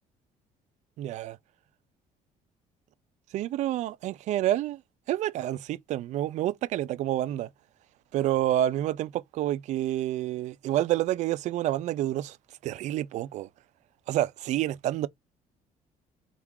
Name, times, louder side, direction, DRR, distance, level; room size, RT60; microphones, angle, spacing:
voice 1, 1.0-1.4 3.3-4.8 5.1-7.5 8.1-12.4 12.6-13.5 14.1-15.1, right 13 dB, 55° right, 0.4 m, -28 dB
4.6 x 2.4 x 3.6 m
cardioid pair, 170°, 14 cm